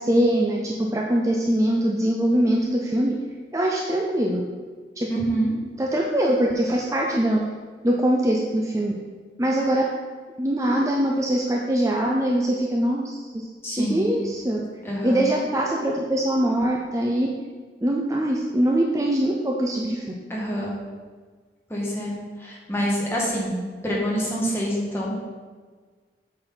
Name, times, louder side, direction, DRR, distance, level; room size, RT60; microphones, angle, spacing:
voice 1, 0.0-3.2 3.5-4.4 5.0-5.1 5.8-7.4 7.8-8.9 9.4-9.8 10.4-13.5 13.7-14.6 15.0-17.3 17.8-20.0, right 1 dB, 20° right, -1 dB, 0.5 m, -22 dB
voice 2, 5.1-5.6 13.6-14.1 14.8-15.2 20.3-20.7 21.7-25.1, equal, 15° left, -5 dB, 1.6 m, -26 dB
7.8 x 6.3 x 3.9 m, 1.5 s
head